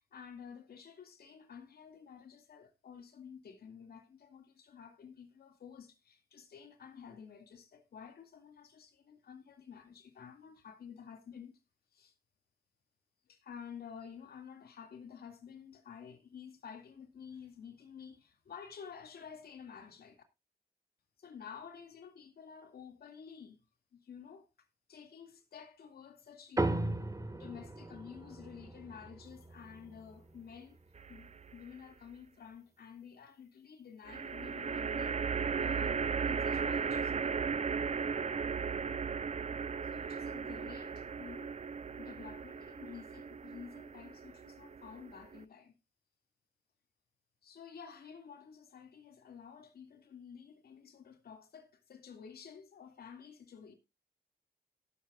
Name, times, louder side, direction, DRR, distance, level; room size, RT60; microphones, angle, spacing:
voice 1, 0.0-11.6 11.9-12.1 13.3-20.2 21.2-23.6 24.0-24.5 24.9-27.0 27.3-30.8 31.1-35.2 35.6-37.1 39.9-41.6 42.0-45.7 47.4-53.7, left 7 dB, 90° left, 2.2 m, -51 dB
sound 1, 26.6-31.3, right 2 dB, 20° right, 1.6 m, -38 dB
sound 2, 31.0-31.6 34.1-45.4, right 6 dB, 45° right, 0.7 m, -36 dB
18.0 x 7.6 x 2.4 m
cardioid pair, 65°, 16 cm